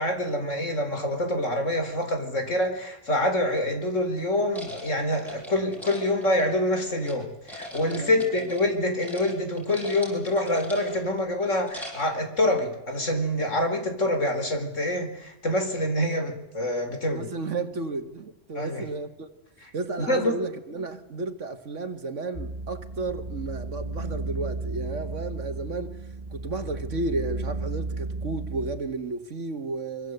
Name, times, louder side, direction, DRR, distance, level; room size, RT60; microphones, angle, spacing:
voice 1, 0.0-17.3 18.5-18.9 19.6-19.7 20.0-20.4, left 1 dB, 90° left, 4.5 m, -26 dB
sound 1, 4.5-7.1 7.5-8.7 9.0-9.3 9.6-11.1 11.5-12.2, left 1 dB, ahead, 7.6 m, -42 dB
voice 2, 7.9-8.3 17.0-19.3 19.7-26.0 26.3-30.1, right 3 dB, 80° right, 2.0 m, -33 dB
sound 2, 22.3-28.7, right 2 dB, 30° right, 1.5 m, -34 dB
25.5 x 24.0 x 8.0 m
omnidirectional pair, 1.3 m